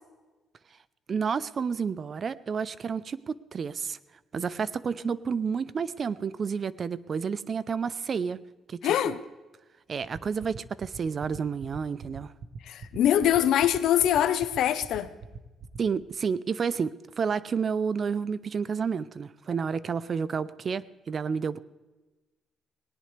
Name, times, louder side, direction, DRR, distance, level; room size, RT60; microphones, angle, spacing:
voice 1, 1.1-4.0 4.3-8.4 8.7-9.2 9.9-12.3 15.8-21.6, right 6 dB, 45° right, 17 dB, 0.6 m, -30 dB
voice 2, 8.8-9.2 12.6-15.1, left 11 dB, 80° left, 12 dB, 0.9 m, -23 dB
sound 1, 10.0-16.0, right 5 dB, 65° right, 1.1 m, -41 dB
19.5 x 18.5 x 3.4 m, 1.1 s
cardioid pair, 90°, 0 cm